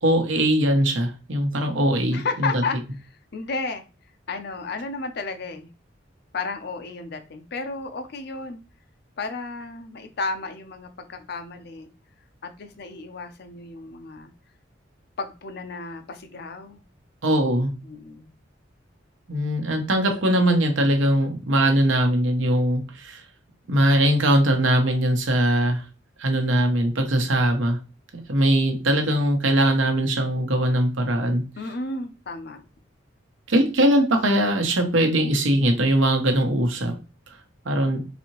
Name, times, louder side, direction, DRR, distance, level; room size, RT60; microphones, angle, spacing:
voice 1, 0.0-2.6 17.2-17.7 19.3-23.2 23.7-25.8 26.2-27.8 28.3-31.4 33.5-36.9 37.6-38.0, right 1 dB, 80° right, 5 dB, 0.9 m, -21 dB
voice 2, 2.1-2.8 3.3-3.8 4.3-5.7 6.3-8.6 9.2-11.9 12.4-14.3 15.2-16.8 17.8-18.3 31.6-32.6, left 3 dB, 55° left, 7 dB, 0.6 m, -32 dB
4.0 x 2.8 x 3.0 m, 0.31 s
head